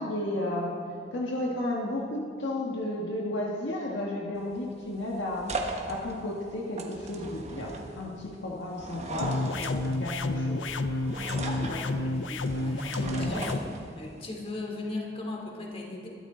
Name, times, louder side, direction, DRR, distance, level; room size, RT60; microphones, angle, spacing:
voice 1, 0.0-5.5 5.9-10.7 11.7-11.9 12.8-13.6, left 1 dB, 70° left, -2 dB, 1.7 m, -33 dB
sound 1, 4.3-14.2, right 2 dB, 35° right, 1.4 m, -39 dB
sound 2, 9.2-13.6, left 2 dB, 90° left, 0.7 m, -30 dB
voice 2, 11.4-13.5 13.9-16.1, left 2 dB, 30° left, -1 dB, 2.9 m, -38 dB
21.5 x 13.0 x 3.9 m, 2.2 s
head